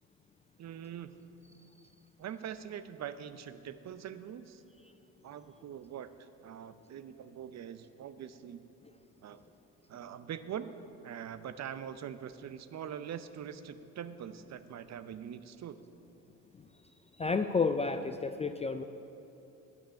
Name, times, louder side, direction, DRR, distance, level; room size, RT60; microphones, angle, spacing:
voice 1, 0.6-1.2 2.2-4.6 5.2-6.1 6.4-8.7 9.2-9.4 9.9-10.7 11.0-15.8, right 9 dB, 45° right, 12 dB, 0.7 m, -43 dB
voice 2, 17.2-18.8, left 4 dB, 15° left, 8 dB, 0.3 m, -30 dB
9.0 x 6.1 x 8.4 m, 2.9 s
hypercardioid pair, 60°, 40 cm